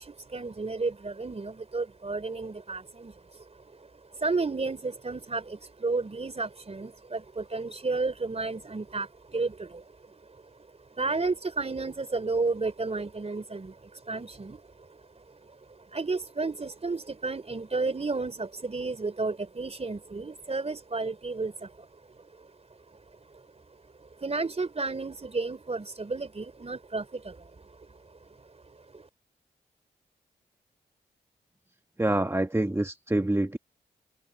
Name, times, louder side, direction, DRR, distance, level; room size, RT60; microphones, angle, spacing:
voice 1, 0.0-29.1, right 3 dB, 40° right, 3.4 m, -33 dB
voice 2, 32.0-33.6, right 1 dB, 15° right, 1.5 m, -26 dB
cardioid pair, 50°, 17 cm